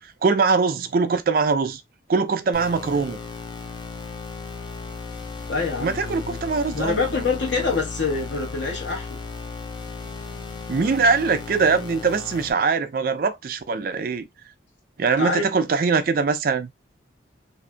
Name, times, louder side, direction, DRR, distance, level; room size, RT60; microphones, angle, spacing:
voice 1, 0.2-1.8 2.1-3.2 5.8-7.0 10.7-14.3 15.0-16.7, right 4 dB, 50° right, 0.4 m, -22 dB
sound 1, 2.5-12.5, left 4 dB, 25° left, 0.4 m, -35 dB
voice 2, 5.5-9.2 15.2-15.5, left 4 dB, 85° left, 1.1 m, -26 dB
2.6 x 2.4 x 2.2 m
head